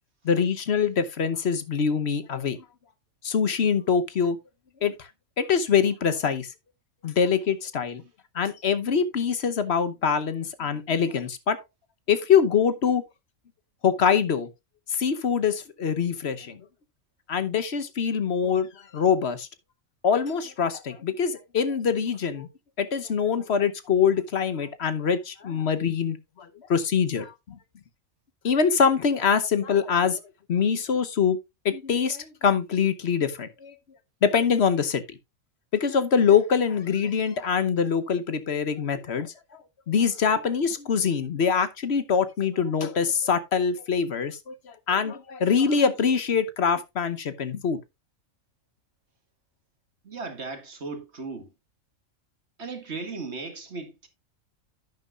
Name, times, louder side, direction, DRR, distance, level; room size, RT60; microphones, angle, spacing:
voice 1, 0.2-2.6 3.2-4.4 4.8-5.1 5.4-6.5 7.0-8.0 8.3-11.6 12.1-13.0 13.8-14.5 14.9-16.6 17.3-18.7 18.9-19.5 20.0-22.5 22.8-27.6 28.4-30.2 30.5-31.4 31.6-33.7 34.2-35.2 35.7-39.3 39.9-47.8, left 6 dB, 50° left, 1.1 m, -24 dB
voice 2, 50.0-51.5 52.6-54.1, right 3 dB, 50° right, 1.9 m, -36 dB
11.0 x 9.2 x 2.4 m
omnidirectional pair, 1.5 m